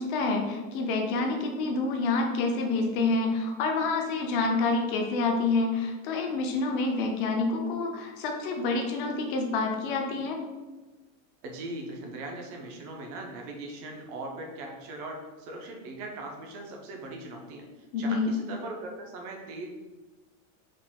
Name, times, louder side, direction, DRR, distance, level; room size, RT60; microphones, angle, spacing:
voice 1, 0.0-10.4 17.9-18.3, left 3 dB, 40° left, 3 dB, 0.6 m, -28 dB
voice 2, 11.4-19.7, right 2 dB, 30° right, 1 dB, 0.5 m, -40 dB
4.9 x 2.4 x 3.5 m, 1.2 s
supercardioid pair, 175°, 41 cm